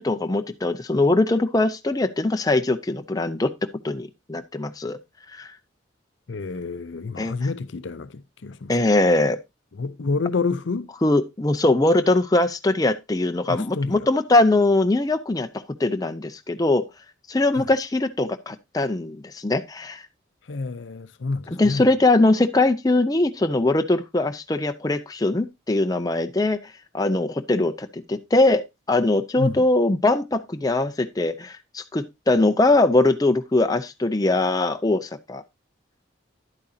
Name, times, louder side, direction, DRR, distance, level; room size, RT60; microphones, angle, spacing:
voice 1, 0.0-3.5 3.8-5.0 5.3-5.5 7.2-7.3 8.7-9.4 11.0-16.8 17.3-20.0 21.5-26.6 26.9-35.4, left 2 dB, 20° left, 0.5 m, -21 dB
voice 2, 6.3-8.7 9.7-10.9 13.5-14.1 17.6-17.7 20.5-21.8 29.4-29.6, left 3 dB, 70° left, 0.6 m, -28 dB
11.0 x 8.7 x 2.7 m
head